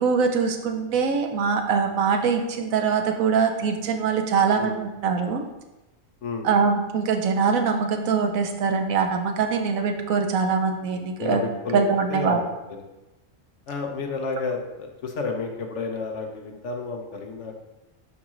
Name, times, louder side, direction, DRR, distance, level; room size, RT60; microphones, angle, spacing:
voice 1, 0.0-5.4 6.4-11.4 11.7-12.4, right 5 dB, 85° right, 5 dB, 1.2 m, -23 dB
voice 2, 10.9-11.8 12.1-12.9 13.7-17.5, left 4 dB, 65° left, 3 dB, 1.1 m, -31 dB
11.0 x 3.7 x 3.1 m, 1.0 s
omnidirectional pair, 1.4 m